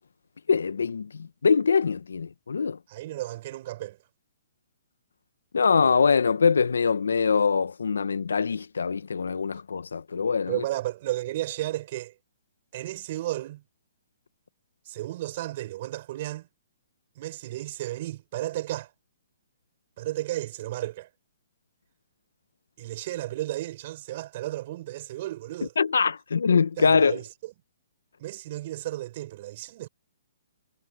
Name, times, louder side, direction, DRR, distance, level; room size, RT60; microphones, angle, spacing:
voice 1, 0.5-2.8 5.5-10.6 25.8-27.2, left 5 dB, 85° left, 0.8 m, -23 dB
voice 2, 2.9-4.0 10.5-12.1 12.7-13.6 14.9-16.5 17.2-18.9 20.0-21.1 22.8-25.7 26.8-27.5 28.2-29.9, right 15 dB, 45° right, 4.5 m, -33 dB
hypercardioid pair, 140°, 0 cm